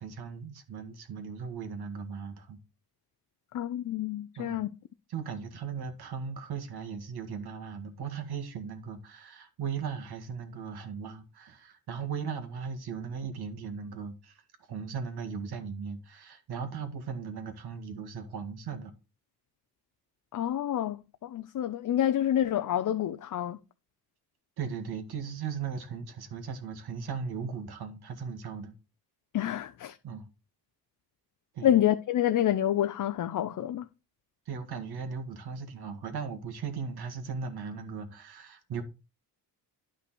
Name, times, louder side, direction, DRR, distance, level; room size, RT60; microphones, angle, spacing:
voice 1, 0.0-2.6 4.4-4.6 5.1-14.4 14.7-18.9 24.6-28.7 30.0-30.3 31.5-31.7 34.5-38.8, right 6 dB, 70° right, 1.9 m, -37 dB
voice 2, 3.5-4.7 20.3-23.6 29.3-30.0 31.6-33.9, left 11 dB, 50° left, 0.6 m, -28 dB
10.5 x 5.5 x 4.3 m
cardioid pair, 105°, 40 cm